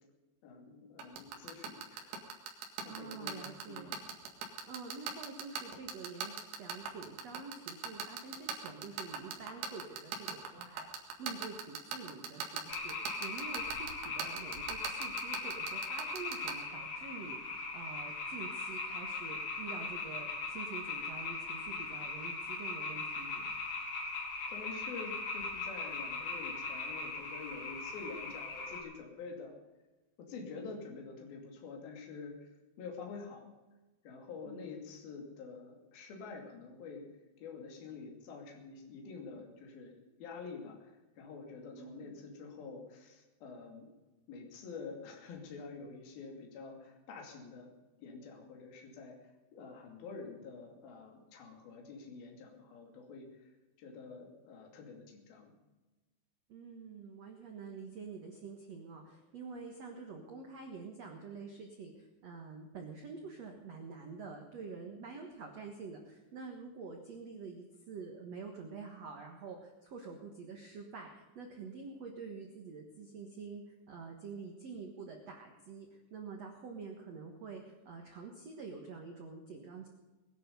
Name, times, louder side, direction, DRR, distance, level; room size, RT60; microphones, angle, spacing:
voice 1, 0.4-2.2 2.6-3.9 4.6-4.7 24.5-29.6 30.2-32.5 32.8-33.5 34.0-37.0 37.4-39.9 40.2-43.9 44.3-47.7 48.0-55.5, left 4 dB, 55° left, 0 dB, 4.2 m, -47 dB
sound 1, 1.0-16.5, right 7 dB, 70° right, 4.0 m, -38 dB
voice 2, 2.9-4.0 4.4-23.5 34.4-34.7 41.7-42.2 56.5-79.9, right 4 dB, 85° right, 3 dB, 1.4 m, -47 dB
sound 2, 12.7-28.8, left 3 dB, 85° left, 5.9 m, -39 dB
20.5 x 11.0 x 5.4 m, 1.1 s
omnidirectional pair, 5.5 m